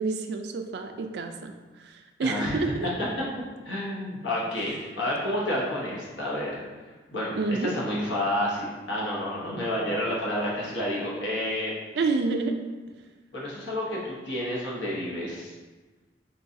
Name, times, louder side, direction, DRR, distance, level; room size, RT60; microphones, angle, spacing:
voice 1, 0.0-2.9 7.4-7.7 11.9-12.6, right 3 dB, 65° right, 5 dB, 0.3 m, -29 dB
voice 2, 2.2-2.6 3.6-6.6 7.1-11.7 13.3-15.5, left 1 dB, 85° left, -5 dB, 1.0 m, -30 dB
3.7 x 3.1 x 2.7 m, 1.3 s
head